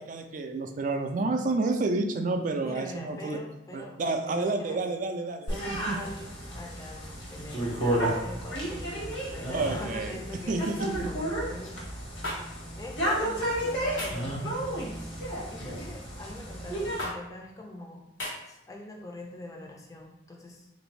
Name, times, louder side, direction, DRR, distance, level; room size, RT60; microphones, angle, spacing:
voice 1, 0.0-3.4 3.7-6.0 9.5-10.2 10.5-10.9, right 3 dB, 45° right, 6 dB, 0.3 m, -30 dB
voice 2, 2.6-4.8 5.5-11.8 12.8-14.7 15.5-18.1 18.4-20.7, left 1 dB, 20° left, 1 dB, 0.4 m, -43 dB
sound 1, 5.5-17.0, right 1 dB, 75° left, 1.1 m, -32 dB
sound 2, 12.2-12.4 14.0-14.3 15.6-15.9 17.0-17.2 18.2-18.4, left 1 dB, 90° left, 1.2 m, -34 dB
3.5 x 2.6 x 3.1 m, 0.91 s
head